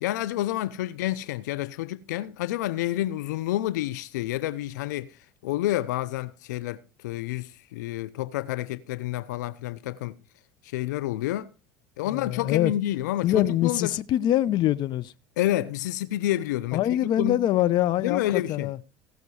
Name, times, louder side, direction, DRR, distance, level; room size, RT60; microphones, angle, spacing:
voice 1, 0.0-10.2 10.6-11.5 12.0-13.9 15.4-17.4 18.0-18.7, left 14 dB, 80° left, 0.7 m, -29 dB
voice 2, 12.1-12.7 13.2-15.1 16.7-18.8, left 12 dB, 55° left, 0.8 m, -24 dB
17.0 x 6.7 x 4.8 m
hypercardioid pair, 85°, 9 cm